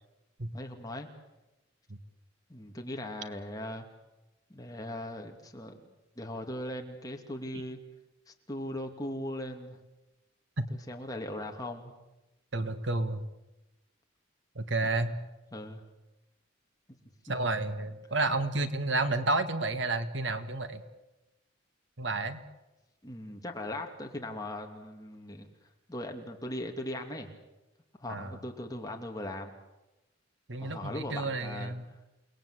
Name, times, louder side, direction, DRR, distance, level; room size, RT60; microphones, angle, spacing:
voice 1, 0.5-1.1 2.5-3.9 4.5-5.9 6.2-7.8 8.3-9.8 10.7-11.9 15.5-15.8 23.0-25.5 25.9-27.3 28.0-29.5 30.6-31.7, left 1 dB, 20° left, 2 dB, 2.8 m, -39 dB
voice 2, 12.5-13.2 14.5-15.1 17.3-20.8 22.0-22.4 28.1-28.4 30.5-31.9, right 2 dB, 65° right, 10 dB, 1.7 m, -31 dB
29.0 x 19.5 x 8.3 m, 1.0 s
head